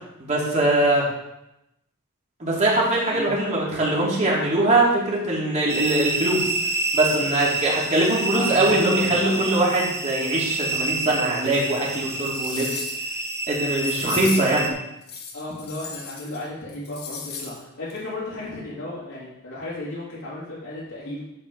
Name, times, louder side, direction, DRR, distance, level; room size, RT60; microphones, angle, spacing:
voice 1, 0.2-1.1 2.4-6.5 6.9-12.8 13.5-14.7, right 1 dB, 35° right, -4 dB, 2.8 m, -22 dB
sound 1, 5.7-14.7, right 3 dB, 10° right, 0.9 m, -28 dB
voice 2, 8.3-9.6 15.3-21.2, left 2 dB, 80° left, -11 dB, 3.3 m, -34 dB
sound 2, 11.6-11.7 12.1-13.1 13.8-14.6 15.0-16.4 16.7-17.6 17.9-18.0, left 5 dB, 50° left, 1.4 m, -36 dB
11.0 x 6.8 x 4.0 m, 0.87 s
head